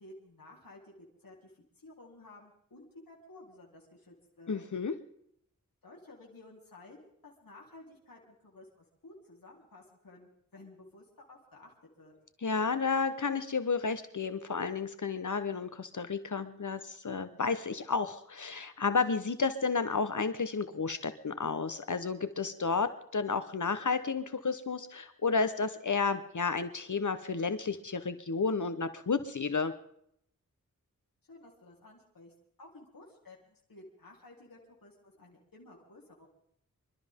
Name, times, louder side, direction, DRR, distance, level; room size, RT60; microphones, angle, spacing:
voice 1, 0.0-4.5 5.8-12.1 31.3-36.3, left 2 dB, 80° left, -2 dB, 3.8 m, -54 dB
voice 2, 4.5-4.9 12.4-29.7, left 4 dB, 60° left, 11 dB, 1.1 m, -32 dB
27.0 x 13.0 x 3.7 m, 0.71 s
wide cardioid pair, 65°, 34 cm